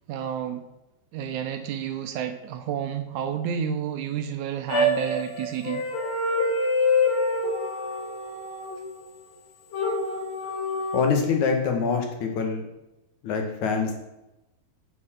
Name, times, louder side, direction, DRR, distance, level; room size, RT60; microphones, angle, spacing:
voice 1, 0.1-0.7 1.1-5.8, right 8 dB, 75° right, 8 dB, 2.0 m, -30 dB
sound 1, 4.7-9.0 9.7-11.0, left 2 dB, 85° left, 3.3 m, -26 dB
voice 2, 10.9-12.6 13.2-13.9, left 5 dB, 65° left, 3 dB, 3.0 m, -25 dB
9.8 x 7.5 x 6.4 m, 0.95 s
omnidirectional pair, 3.8 m